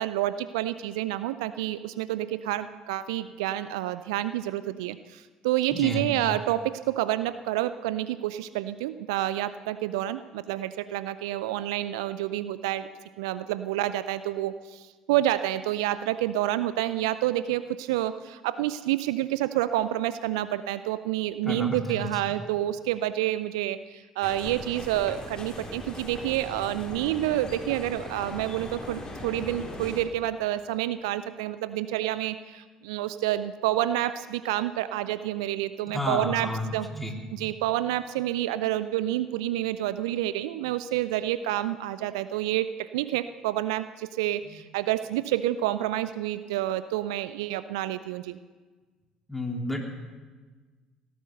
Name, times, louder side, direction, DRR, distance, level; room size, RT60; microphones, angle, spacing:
voice 1, 0.0-12.9 13.2-36.9 37.3-48.4, right 14 dB, 70° right, 14 dB, 0.4 m, -28 dB
voice 2, 5.7-6.1 21.4-22.1 35.9-37.1 44.5-44.6 49.3-49.8, left 1 dB, 5° left, 1 dB, 3.0 m, -31 dB
sound 1, 24.2-30.0, left 1 dB, 25° left, 4.3 m, -39 dB
17.0 x 12.0 x 6.7 m, 1.4 s
figure-of-eight pair, 55°, 3 cm